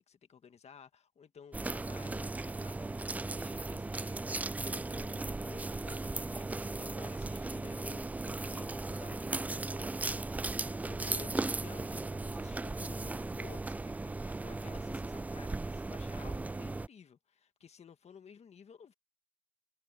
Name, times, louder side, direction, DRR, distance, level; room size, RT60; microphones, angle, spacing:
voice 1, 0.0-18.9, left 7 dB, 40° left, 1.9 m, -55 dB
sound 1, 1.5-16.9, right 2 dB, 10° right, 0.3 m, -37 dB
cardioid pair, 110°, 17 cm